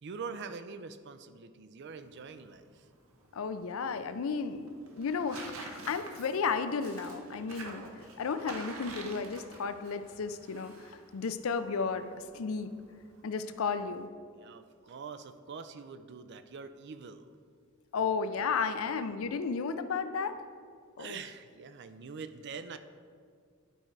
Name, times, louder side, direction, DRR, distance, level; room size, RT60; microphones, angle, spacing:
voice 1, 0.0-2.9 14.3-17.3 21.0-22.8, right 5 dB, 55° right, 11 dB, 0.4 m, -44 dB
Tearing, 1.8-14.1, right 3 dB, 85° right, 1.0 m, -50 dB
voice 2, 3.3-7.8 8.2-12.7 13.2-14.1 17.9-20.4 21.0-21.2, left 5 dB, 75° left, 11 dB, 0.5 m, -33 dB
11.0 x 4.4 x 4.7 m, 2.1 s
head